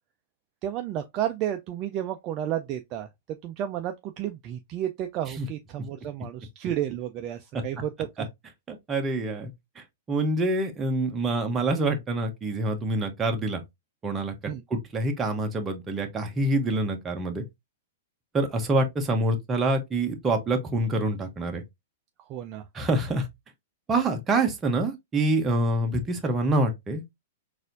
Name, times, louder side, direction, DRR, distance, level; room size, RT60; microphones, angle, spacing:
voice 1, 0.6-8.3 14.5-14.6 22.3-22.7, right 11 dB, 35° right, 0.4 m, -32 dB
voice 2, 8.7-9.5 10.1-13.6 14.0-14.3 14.7-17.4 18.3-21.6 22.7-23.3 23.9-27.0, right 2 dB, 15° right, 0.8 m, -26 dB
4.1 x 2.5 x 2.5 m
hypercardioid pair, 145°, 0 cm